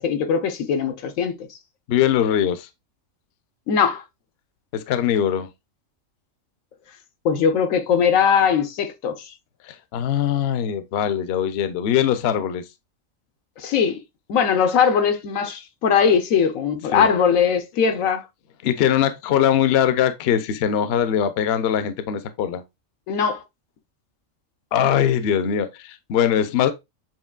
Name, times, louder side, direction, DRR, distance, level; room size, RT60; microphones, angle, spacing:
voice 1, 0.0-1.5 3.7-4.0 7.2-9.3 13.6-14.0 14.3-18.2 23.1-23.4, left 7 dB, 85° left, 1.2 m, -20 dB
voice 2, 1.9-2.7 4.7-5.5 9.6-12.7 16.9-17.1 18.6-22.6 24.7-26.7, left 9 dB, 60° left, 0.7 m, -21 dB
7.3 x 2.9 x 2.3 m
omnidirectional pair, 1.4 m